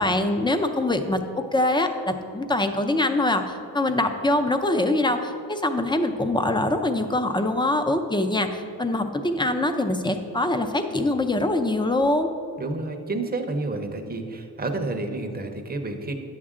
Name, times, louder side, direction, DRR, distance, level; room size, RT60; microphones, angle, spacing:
voice 1, 0.0-12.3, left 2 dB, 10° left, 7 dB, 0.5 m, -24 dB
voice 2, 12.6-16.1, right 2 dB, 25° right, 4 dB, 0.8 m, -30 dB
10.5 x 7.3 x 3.7 m, 2.7 s
wide cardioid pair, 135°, 39 cm